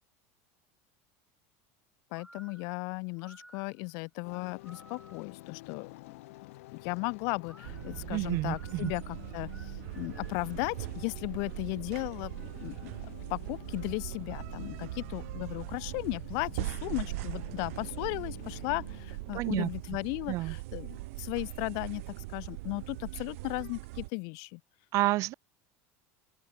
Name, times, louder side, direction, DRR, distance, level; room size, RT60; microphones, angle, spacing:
voice 1, 2.1-6.2 6.8-12.9 13.3-24.6, left 35 dB, 60° left, 0.6 m, -36 dB
sound 1, 2.1-5.4 7.4-10.5, right 1 dB, 5° right, 2.5 m, -57 dB
sound 2, 4.2-20.6, left 20 dB, 80° left, 2.7 m, -50 dB
sound 3, 7.6-24.1, right 22 dB, 80° right, 3.2 m, -40 dB
voice 2, 8.1-8.9 19.3-19.7 20.3-20.6 24.9-25.3, right 18 dB, 45° right, 0.4 m, -29 dB
open air
supercardioid pair, 145°, 7 cm